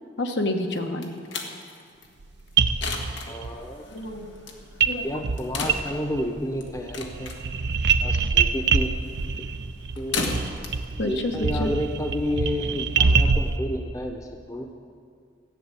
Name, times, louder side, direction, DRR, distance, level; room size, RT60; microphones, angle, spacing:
voice 1, 0.2-1.1 3.9-4.3 4.9-5.2 11.0-11.3 11.6-11.7, left 2 dB, 75° left, 4 dB, 1.3 m, -28 dB
sound 1, 0.7-12.2, left 4 dB, 90° left, 1.4 m, -37 dB
sound 2, 2.2-2.3 2.6-3.5 4.8-5.0 5.2-6.3 6.6-13.6, right 5 dB, 65° right, 0.5 m, -24 dB
voice 2, 3.2-3.9 5.0-7.3 8.0-8.9 9.4-9.5 10.0-10.3 11.0-14.2 14.5-14.7, equal, 20° left, 3 dB, 0.8 m, -30 dB
14.0 x 7.4 x 9.1 m, 2.1 s
head